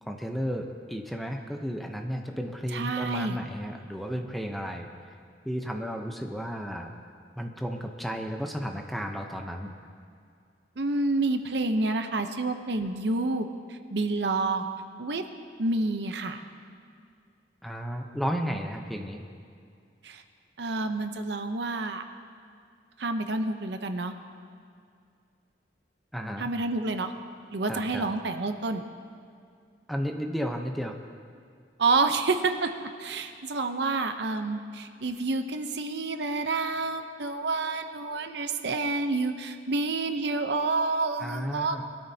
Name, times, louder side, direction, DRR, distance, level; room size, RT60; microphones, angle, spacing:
voice 1, 0.0-4.9 5.4-6.9 7.4-9.7 17.6-19.2 26.1-26.5 27.7-28.1 29.9-30.9 41.2-41.8, equal, ahead, 3 dB, 0.8 m, -33 dB
voice 2, 2.7-3.4 10.8-14.7 15.0-15.2 15.6-16.4 20.0-20.2 20.6-22.0 23.0-24.1 26.4-27.1 27.5-28.8 31.8-41.8, right 3 dB, 70° right, 7 dB, 0.8 m, -28 dB
22.0 x 13.0 x 2.8 m, 2.3 s
head